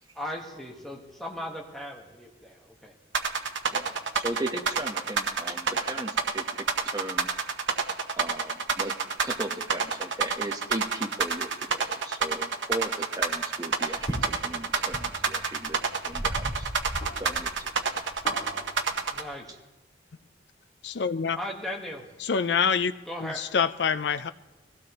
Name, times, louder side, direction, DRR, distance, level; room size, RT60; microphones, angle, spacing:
voice 1, 0.1-2.9 3.8-4.0 19.1-19.6 21.4-22.0 23.1-23.4, left 1 dB, ahead, -2 dB, 1.4 m, -37 dB
sound 1, 3.1-19.2, right 5 dB, 80° right, 1.0 m, -27 dB
voice 2, 4.2-7.3 8.2-8.9 9.2-15.8 16.1-16.7 17.2-17.5, right 1 dB, 20° right, 3 dB, 1.0 m, -37 dB
sound 2, 13.9-19.2, equal, 40° left, 3.7 m, -38 dB
voice 3, 20.8-21.4 22.2-22.9 23.2-24.3, left 6 dB, 60° left, 12 dB, 0.5 m, -26 dB
22.0 x 16.0 x 3.0 m, 1.1 s
head